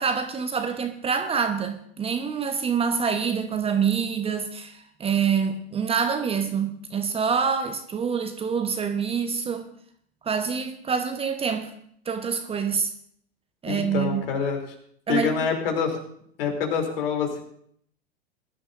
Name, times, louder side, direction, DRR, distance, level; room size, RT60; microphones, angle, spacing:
voice 1, 0.0-9.7 10.2-11.7 12.1-12.9 13.6-14.2 15.1-15.3, right 6 dB, 20° right, 1.0 m, -26 dB
voice 2, 13.6-14.6 15.1-16.0 16.4-17.4, left 6 dB, 60° left, 3.3 m, -26 dB
20.0 x 11.5 x 2.6 m
figure-of-eight pair, 90°, 32 cm